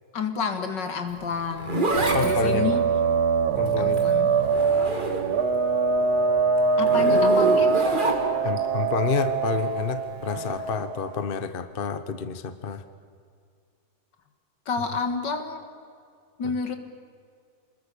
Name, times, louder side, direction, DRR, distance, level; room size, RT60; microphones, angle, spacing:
voice 1, 0.1-1.9 2.2-2.8 3.8-4.3 6.8-7.8 14.7-15.6 16.4-16.8, left 5 dB, 70° left, 7 dB, 2.5 m, -29 dB
Zipper (clothing), 1.1-5.6 5.9-8.6 10.2-10.5, right 2 dB, 25° right, 2.5 m, -29 dB
voice 2, 2.0-2.8 3.6-4.0 8.4-12.8 16.4-16.5, left 6 dB, 40° left, 11 dB, 1.0 m, -29 dB
sound 1, 2.0-11.2, right 4 dB, 60° right, 1.6 m, -23 dB
28.0 x 21.0 x 6.9 m, 2.3 s
omnidirectional pair, 2.0 m